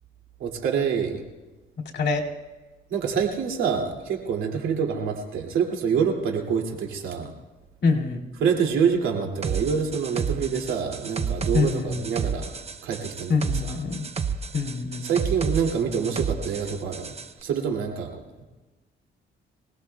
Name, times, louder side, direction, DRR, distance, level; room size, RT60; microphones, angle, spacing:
voice 1, 0.4-1.2 2.9-7.3 8.4-12.5 12.8-13.4 13.7-13.8 15.0-18.4, right 6 dB, 85° right, 1 dB, 2.6 m, -26 dB
voice 2, 7.8-8.2 11.5-12.1 13.3-14.0 14.5-15.1, left 4 dB, 60° left, -1 dB, 2.5 m, -25 dB
sound 1, 9.4-17.3, right 6 dB, 30° right, 0.8 m, -31 dB
25.0 x 18.0 x 2.3 m, 1.2 s
cardioid pair, 90°, 20 cm